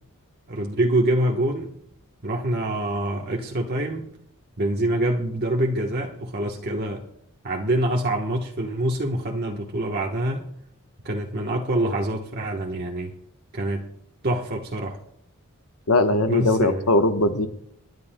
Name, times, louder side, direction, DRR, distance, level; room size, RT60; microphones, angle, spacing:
voice 1, 0.5-1.7 2.2-4.1 4.6-7.0 7.4-10.4 11.0-13.1 13.5-13.8 14.2-15.0 16.3-16.9, right 1 dB, 45° right, -1 dB, 1.1 m, -25 dB
voice 2, 15.9-17.5, left 2 dB, 90° left, 7 dB, 1.1 m, -20 dB
28.0 x 11.0 x 2.2 m, 0.71 s
head